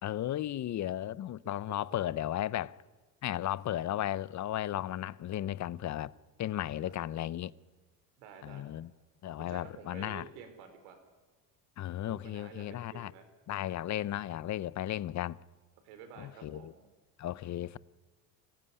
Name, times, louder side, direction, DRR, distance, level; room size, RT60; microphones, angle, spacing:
voice 1, 0.0-2.7 3.2-6.1 6.4-7.5 8.4-8.9 9.2-10.2 11.8-13.1 13.5-15.4 16.2-16.7 17.2-17.8, left 12 dB, 35° left, 0.7 m, -35 dB
voice 2, 6.5-7.0 8.2-8.6 9.4-11.0 12.1-13.2 15.8-16.9, right 7 dB, 80° right, 4.5 m, -51 dB
24.5 x 15.5 x 9.8 m
supercardioid pair, 100°, 48 cm